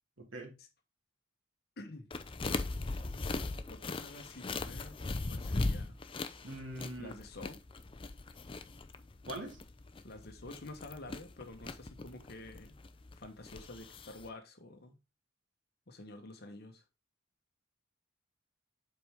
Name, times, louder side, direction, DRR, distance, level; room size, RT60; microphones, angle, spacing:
voice 1, 0.2-0.6 6.4-7.1 9.2-9.6, right 1 dB, 70° right, 2.0 m, -43 dB
voice 2, 1.8-2.1 3.7-5.0 5.2-6.0 7.0-7.6 10.0-12.8 13.1-15.0 15.9-16.8, left 2 dB, 50° left, 1.1 m, -49 dB
sound 1, 2.1-14.3, left 3 dB, 25° left, 0.5 m, -39 dB
7.7 x 4.4 x 3.5 m
head